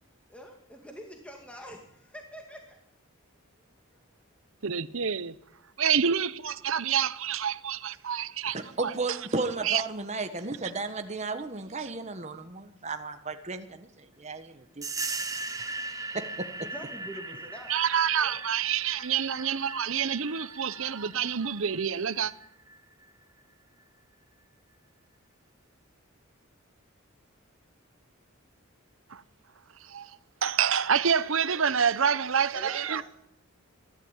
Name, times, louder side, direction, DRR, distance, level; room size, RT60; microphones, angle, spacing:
voice 1, 0.3-2.8 16.6-17.7 18.2-18.4 32.5-33.0, equal, 5° left, 2.2 m, -45 dB
voice 2, 4.6-5.3 5.8-8.9 9.6-9.8 17.7-22.3 29.1-29.2 29.8-33.0, right 7 dB, 70° right, 0.8 m, -27 dB
voice 3, 8.5-14.9 15.9-16.5, right 3 dB, 30° right, 1.4 m, -34 dB
sound 1, 14.8-23.1, right 3 dB, 15° right, 1.1 m, -39 dB
22.0 x 13.0 x 9.0 m
head